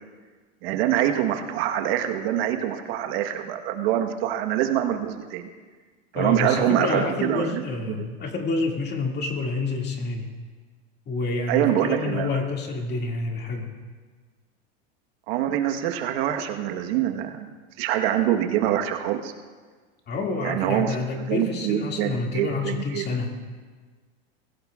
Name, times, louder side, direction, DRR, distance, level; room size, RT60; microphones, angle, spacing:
voice 1, 0.6-5.5 6.1-8.1 11.5-12.4 15.3-17.5 17.8-19.3 20.4-23.0, right 11 dB, 65° right, 5 dB, 1.3 m, -25 dB
voice 2, 6.1-10.3 11.1-13.7 20.1-23.3, left 3 dB, 30° left, 1 dB, 2.2 m, -28 dB
22.0 x 16.0 x 2.4 m, 1.5 s
supercardioid pair, 125°, 33 cm